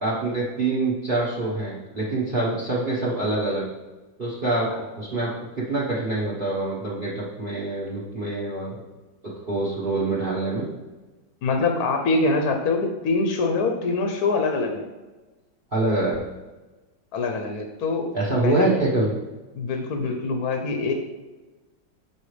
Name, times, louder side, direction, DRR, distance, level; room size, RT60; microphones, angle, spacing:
voice 1, 0.0-3.7 4.2-5.3 5.6-8.8 9.5-10.6 15.7-16.2 18.1-19.1, right 2 dB, 35° right, -5 dB, 1.1 m, -25 dB
voice 2, 11.4-14.8 17.1-18.1 18.4-18.7 19.5-20.9, left 3 dB, 65° left, 4 dB, 1.1 m, -24 dB
6.2 x 5.4 x 3.2 m, 1.2 s
omnidirectional pair, 2.0 m